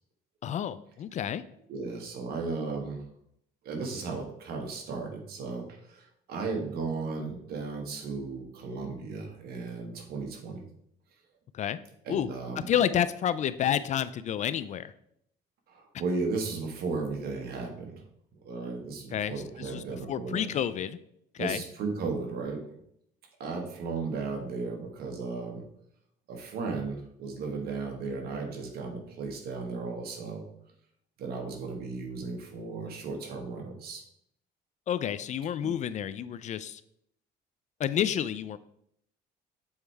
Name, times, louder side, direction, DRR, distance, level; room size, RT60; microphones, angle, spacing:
voice 1, 0.4-1.4 11.5-11.8 12.1-12.3 12.7-14.9 19.1-21.0 21.3-21.6 34.9-36.8 37.8-38.6, left 9 dB, 45° left, 15 dB, 0.4 m, -30 dB
voice 2, 1.7-3.0 3.6-10.6 12.0-12.7 15.7-18.0 18.4-20.5 21.4-22.6 23.4-25.6 26.3-30.5 31.2-34.0 35.6-35.7, right 4 dB, 65° right, 2 dB, 1.5 m, -35 dB
7.2 x 4.6 x 3.3 m, 0.72 s
cardioid pair, 110°, 17 cm